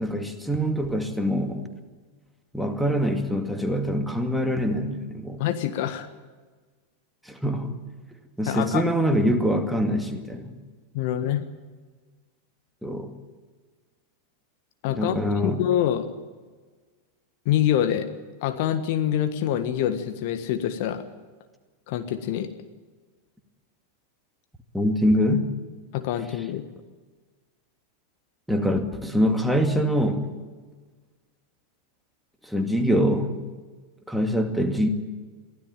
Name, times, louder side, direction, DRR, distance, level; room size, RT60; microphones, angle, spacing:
voice 1, 0.0-1.7 2.5-5.4 7.3-7.8 8.4-10.5 12.8-13.1 14.9-15.6 24.7-25.5 28.5-30.2 32.5-33.3 34.1-34.9, equal, ahead, 5 dB, 2.3 m, -24 dB
voice 2, 5.4-6.1 8.4-8.8 10.9-11.4 14.8-16.1 17.4-18.1 18.4-21.0 21.9-22.5 25.9-26.6, left 11 dB, 50° left, 9 dB, 1.5 m, -25 dB
23.5 x 16.0 x 9.1 m, 1.4 s
figure-of-eight pair, 90°, 0 cm